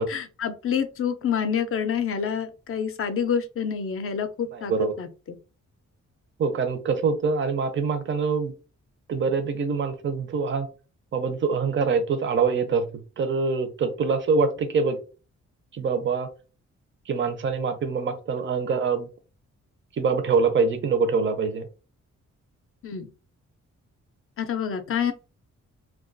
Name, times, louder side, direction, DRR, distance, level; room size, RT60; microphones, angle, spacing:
voice 1, 0.0-4.7 5.0-5.1 22.8-23.1 24.4-25.1, left 7 dB, 50° left, 0.4 m, -27 dB
voice 2, 4.5-4.9 6.4-8.5 9.1-10.7 11.1-12.9 13.2-15.0 15.7-16.3 17.1-19.1 20.0-21.7, right 5 dB, 40° right, 0.5 m, -24 dB
2.3 x 2.2 x 2.5 m
cardioid pair, 115°, 29 cm